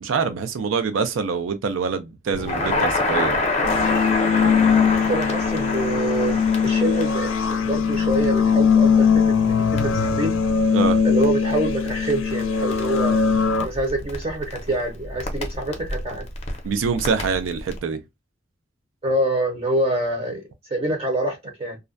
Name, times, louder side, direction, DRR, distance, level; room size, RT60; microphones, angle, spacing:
voice 1, 0.0-3.7 10.7-11.0 16.6-18.0, right 5 dB, 80° right, 0.4 m, -25 dB
Crackle, 2.3-17.8, left 2 dB, 35° left, 0.5 m, -28 dB
sound 1, 3.6-13.6, left 6 dB, 85° left, 0.4 m, -20 dB
voice 2, 5.1-10.3 11.0-13.2 13.6-16.2 19.0-20.4 20.7-21.8, right 1 dB, 30° right, 0.6 m, -26 dB
2.4 x 2.1 x 2.4 m
head